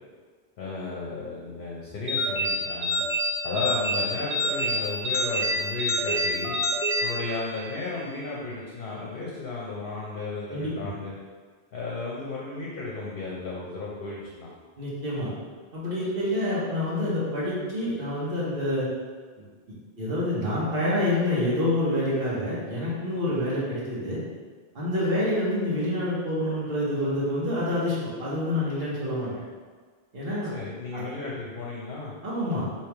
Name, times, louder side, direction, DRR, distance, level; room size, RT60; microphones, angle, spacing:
voice 1, 0.6-3.0 3.4-6.6 7.0-11.1 11.7-14.5 30.5-32.1, left 3 dB, 55° left, -5 dB, 0.9 m, -34 dB
sound 1, 2.1-7.8, equal, 40° right, 0.6 m, -27 dB
voice 2, 10.5-10.9 14.8-15.3 15.7-18.9 20.0-24.2 24.7-29.3 30.1-30.5 30.9-31.0 32.2-32.7, left 1 dB, 60° right, -8 dB, 1.4 m, -27 dB
3.3 x 3.0 x 4.5 m, 1.5 s
omnidirectional pair, 1.1 m